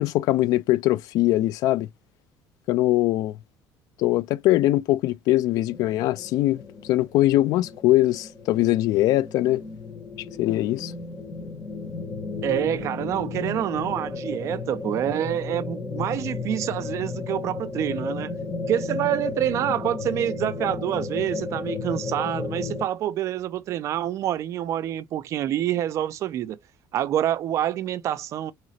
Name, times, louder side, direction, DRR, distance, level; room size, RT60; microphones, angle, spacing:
voice 1, 0.0-1.9 2.7-3.4 4.0-6.6 6.9-9.6 10.4-10.9, left 16 dB, 65° left, 0.4 m, -22 dB
sound 1, 5.7-22.9, left 3 dB, 15° left, 1.0 m, -33 dB
voice 2, 12.4-18.3 18.7-26.6 26.9-28.5, right 11 dB, 50° right, 0.5 m, -27 dB
3.7 x 3.0 x 3.2 m
cardioid pair, 155°, 7 cm